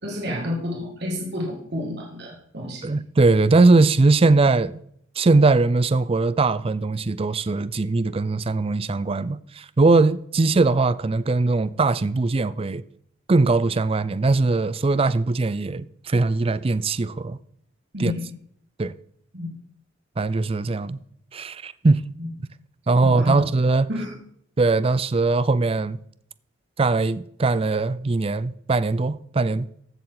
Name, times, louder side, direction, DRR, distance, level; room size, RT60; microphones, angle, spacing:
voice 1, 0.0-3.0 17.9-18.3 19.3-19.5 22.2-22.3 23.0-23.5 23.9-24.2, left 1 dB, 60° right, 2.0 m, -30 dB
voice 2, 2.8-4.8 5.2-12.8 13.3-17.4 18.0-18.1 18.8-18.9 20.2-21.0 21.3-22.1 22.9-23.9 24.6-26.0 26.8-29.7, right 3 dB, 30° right, 0.4 m, -20 dB
15.0 x 7.0 x 4.0 m
head